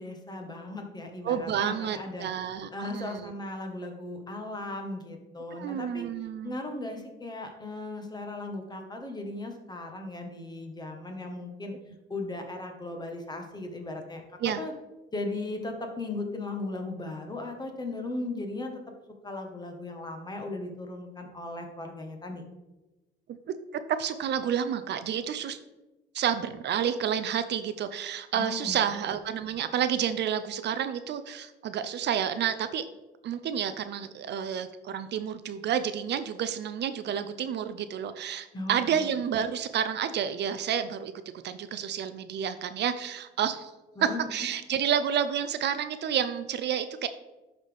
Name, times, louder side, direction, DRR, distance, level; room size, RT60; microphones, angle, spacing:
voice 1, 0.0-2.3 2.7-6.1 6.4-11.7 12.1-14.2 14.6-14.7 15.1-18.8 19.2-22.4 28.3-28.9 38.5-39.0 44.0-44.2, left 2 dB, 20° left, 3 dB, 1.3 m, -37 dB
voice 2, 1.2-3.3 5.5-6.6 14.4-14.6 23.9-25.6 26.1-32.8 33.2-41.1 41.4-43.7 44.0-47.1, right 8 dB, 60° right, 11 dB, 0.5 m, -30 dB
11.5 x 4.1 x 3.4 m, 1.1 s
cardioid pair, 105°, 20 cm